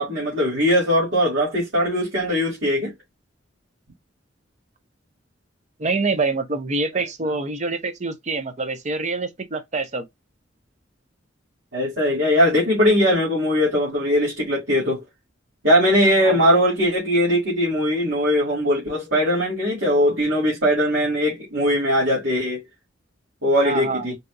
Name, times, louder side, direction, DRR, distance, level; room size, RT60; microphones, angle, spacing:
voice 1, 0.0-2.9 7.2-7.3 11.7-15.0 15.6-22.6 23.4-24.2, equal, 70° right, 2.1 m, -20 dB
voice 2, 5.8-10.0 16.2-16.4 23.6-24.1, right 3 dB, 40° right, 0.7 m, -25 dB
4.1 x 2.5 x 2.3 m
head